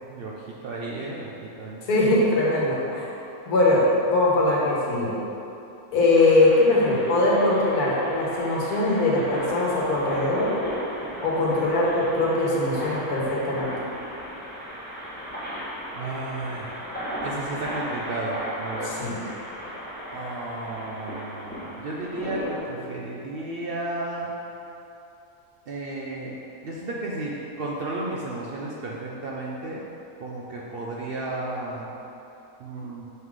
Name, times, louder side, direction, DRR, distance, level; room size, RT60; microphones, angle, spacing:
voice 1, 0.0-0.3 0.6-1.3 1.6-1.8 15.9-16.7 17.2-18.9 20.1-24.3 25.7-26.3 26.6-29.8 30.2-31.9 32.6-33.1, right 2 dB, 65° right, -4 dB, 0.6 m, -33 dB
voice 2, 1.8-3.1 3.5-5.1 5.9-10.5 11.2-13.7 18.8-19.2, left 2 dB, 85° left, -5 dB, 1.5 m, -21 dB
sound 1, 6.1-22.6, equal, 10° left, 0.9 m, -36 dB
5.5 x 3.8 x 4.6 m, 2.9 s
omnidirectional pair, 1.6 m